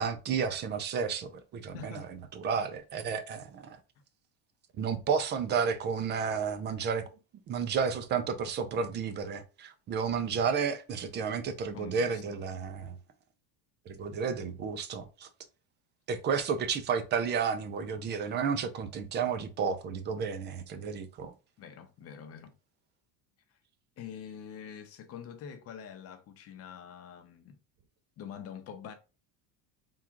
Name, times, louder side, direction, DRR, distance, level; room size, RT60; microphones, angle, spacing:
voice 1, 0.0-3.8 4.8-7.0 7.5-12.9 13.9-15.3 16.1-21.3, right 6 dB, 25° right, 0.4 m, -32 dB
voice 2, 1.7-2.1 11.7-12.4 21.6-22.6 23.5-23.6 24.0-27.6 28.2-28.9, left 7 dB, 35° left, 0.8 m, -45 dB
3.6 x 2.4 x 4.5 m
cardioid pair, 150°, 42 cm